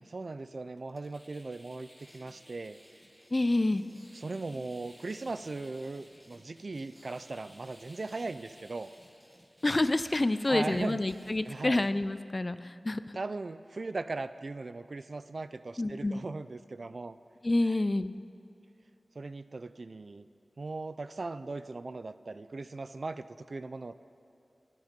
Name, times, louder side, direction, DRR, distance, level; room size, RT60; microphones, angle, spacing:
voice 1, 0.0-2.8 4.1-8.9 10.5-11.0 11.4-11.8 13.1-17.2 19.2-20.3 20.6-23.9, right 3 dB, 60° right, 13 dB, 0.4 m, -38 dB
sound 1, 0.8-11.9, equal, 5° right, 1.7 m, -57 dB
voice 2, 3.3-3.8 9.6-13.2 15.8-16.2 17.4-18.1, left 2 dB, 35° left, 12 dB, 0.4 m, -28 dB
21.0 x 11.0 x 5.2 m, 2.5 s
wide cardioid pair, 60°, 0 cm